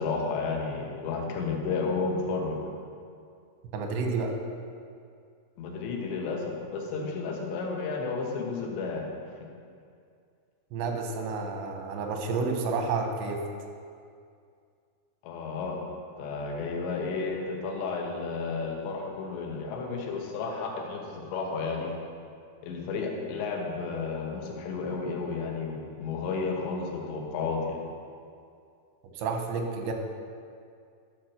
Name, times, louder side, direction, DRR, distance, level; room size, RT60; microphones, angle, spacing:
voice 1, 0.0-2.6 5.6-9.1 15.2-15.8 16.2-21.9 22.6-27.8, left 4 dB, 85° left, 0 dB, 3.4 m, -32 dB
voice 2, 3.7-4.3 10.7-13.4 29.1-29.9, right 4 dB, 90° right, 3 dB, 3.2 m, -30 dB
11.5 x 4.5 x 6.5 m, 2.3 s
omnidirectional pair, 4.9 m